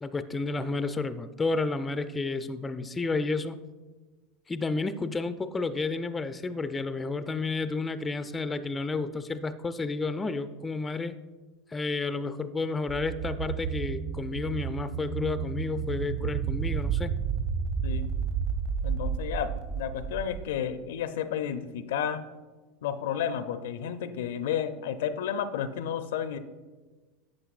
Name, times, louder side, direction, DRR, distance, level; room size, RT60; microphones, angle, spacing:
voice 1, 0.0-3.6 4.5-11.2 11.7-17.2, left 3 dB, 15° left, 12 dB, 0.4 m, -31 dB
sound 1, 12.9-20.5, right 7 dB, 45° right, 1.9 m, -31 dB
voice 2, 18.8-22.2 22.8-26.4, left 8 dB, 70° left, 12 dB, 0.5 m, -32 dB
11.5 x 7.8 x 2.4 m, 1.3 s
hypercardioid pair, 90°, 0 cm